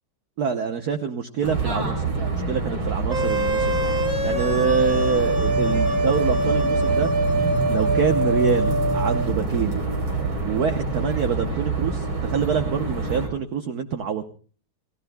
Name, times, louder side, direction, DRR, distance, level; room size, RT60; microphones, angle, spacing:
voice 1, 0.4-3.9 4.2-7.1 7.7-9.9 10.4-14.3, right 7 dB, 55° right, 6 dB, 1.3 m, -26 dB
sound 1, 1.4-13.3, right 3 dB, 85° right, 4.4 m, -26 dB
sound 2, 3.1-9.3, right 1 dB, 25° right, 1.3 m, -24 dB
30.0 x 18.0 x 2.3 m, 0.40 s
omnidirectional pair, 2.2 m